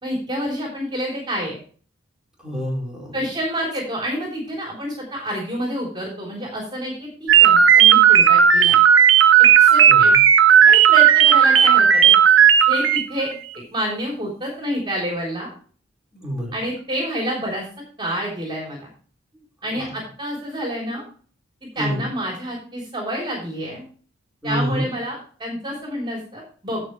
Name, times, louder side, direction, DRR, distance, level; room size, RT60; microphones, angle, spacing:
voice 1, 0.0-1.6 3.1-8.8 9.6-10.1 10.6-12.1 12.7-15.5 16.5-17.7 18.0-18.9 19.6-21.0 21.8-23.8 24.4-26.8, equal, 25° right, -1 dB, 3.6 m, -28 dB
voice 2, 2.4-3.2 9.9-10.2 16.1-16.7 19.3-19.9 21.8-22.1 24.4-24.9, equal, 5° right, -4 dB, 4.5 m, -28 dB
sound 1, 7.3-13.0, right 8 dB, 75° right, 1.1 m, -13 dB
16.0 x 6.0 x 3.2 m, 0.41 s
head